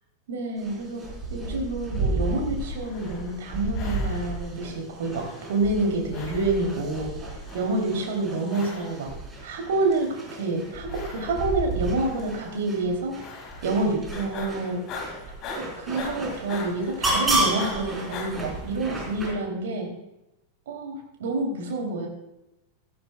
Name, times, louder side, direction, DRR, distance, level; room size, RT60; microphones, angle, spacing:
voice 1, 0.3-7.1 7.5-9.1 9.4-13.2 13.6-14.8 15.6-19.9 20.7-22.1, right 2 dB, 60° right, 2 dB, 2.9 m, -28 dB
sound 1, 0.6-19.3, right 2 dB, 15° right, 4.0 m, -32 dB
sound 2, 2.7-3.5 3.7-4.5 5.1-5.9 6.1-6.9 7.4-8.1 8.5-9.1 9.7-10.4 10.9-11.7 12.1-12.5 13.2-13.8 14.1-18.3, left 5 dB, 35° left, 2.3 m, -41 dB
15.5 x 15.0 x 2.3 m, 0.92 s
figure-of-eight pair, 90°, 0 cm